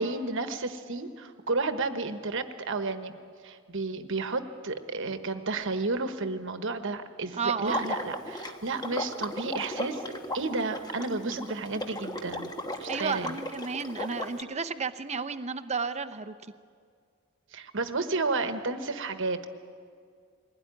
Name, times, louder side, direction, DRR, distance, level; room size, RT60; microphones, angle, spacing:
voice 1, 0.0-3.2 3.4-10.0 10.3-12.5 12.8-13.4 17.5-19.5, right 3 dB, 60° right, 9 dB, 1.2 m, -32 dB
voice 2, 7.4-7.9 11.3-11.4 12.9-16.3, right 5 dB, 30° right, 10 dB, 0.7 m, -32 dB
Water / Liquid, 7.7-14.4, left 1 dB, 20° left, 1.3 m, -36 dB
21.0 x 17.0 x 9.9 m, 2.2 s
head